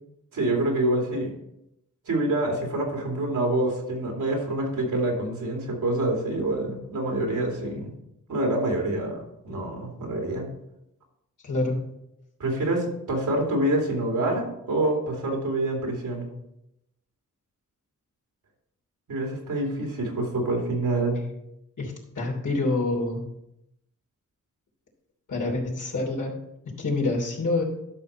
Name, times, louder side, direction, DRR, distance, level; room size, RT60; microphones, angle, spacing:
voice 1, 0.3-1.3 2.1-7.9 8.3-10.5 12.4-16.3 19.1-21.2, right 1 dB, 85° right, 0 dB, 2.7 m, -26 dB
voice 2, 11.4-11.8 21.8-23.2 25.3-26.3 26.8-27.6, left 2 dB, 70° left, -2 dB, 3.0 m, -27 dB
12.0 x 6.1 x 4.3 m, 0.84 s
cardioid pair, 75°, 32 cm